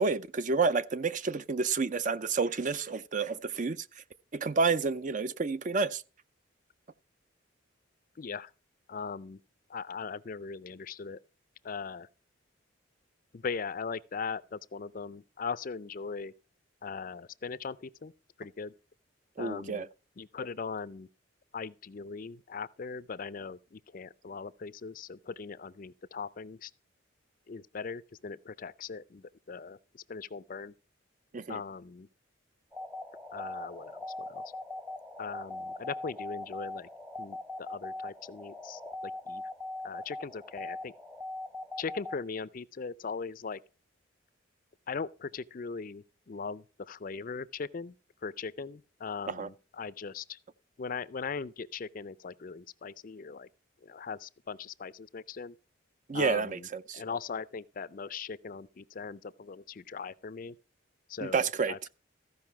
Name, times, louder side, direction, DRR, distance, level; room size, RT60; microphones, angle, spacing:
voice 1, 0.0-3.9 4.3-6.0 19.4-19.9 31.3-31.6 49.3-49.5 56.1-57.0 61.2-61.9, right 4 dB, 40° right, 0.5 m, -29 dB
voice 2, 8.2-8.5 8.9-9.4 9.7-11.2 11.6-12.1 13.3-16.3 16.8-18.1 18.4-18.7 19.4-19.8 20.2-21.1 21.5-26.7 27.5-30.7 31.5-32.1 33.3-34.4 35.2-36.9 37.2-39.4 39.8-40.9 41.8-43.6 44.9-47.9 48.2-50.4 50.8-53.5 53.8-55.5 56.1-56.7 56.9-60.6 61.1-61.9, left 5 dB, 45° left, 0.4 m, -39 dB
sound 1, 32.7-42.2, left 2 dB, 5° right, 0.7 m, -41 dB
14.5 x 5.4 x 5.8 m
head